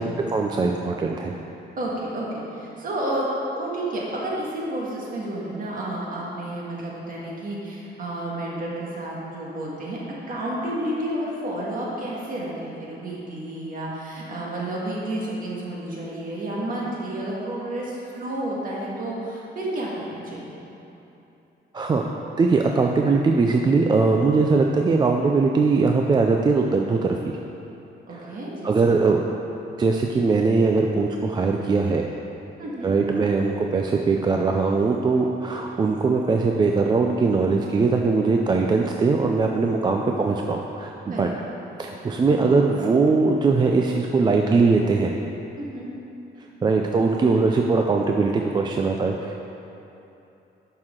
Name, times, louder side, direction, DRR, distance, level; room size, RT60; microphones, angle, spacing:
voice 1, 0.0-1.4 21.7-22.0 22.4-27.2 28.1-28.3 28.6-29.2 29.8-32.1 32.8-41.3 41.8-45.2 46.6-49.5, right 4 dB, 25° right, 1 dB, 0.3 m, -21 dB
voice 2, 1.8-3.3 3.5-10.0 10.3-20.5 28.1-28.7 32.6-32.9 41.1-41.3 45.6-45.9, right 1 dB, 50° right, -5 dB, 1.8 m, -31 dB
11.0 x 6.2 x 3.7 m, 2.9 s
wide cardioid pair, 180°, 19 cm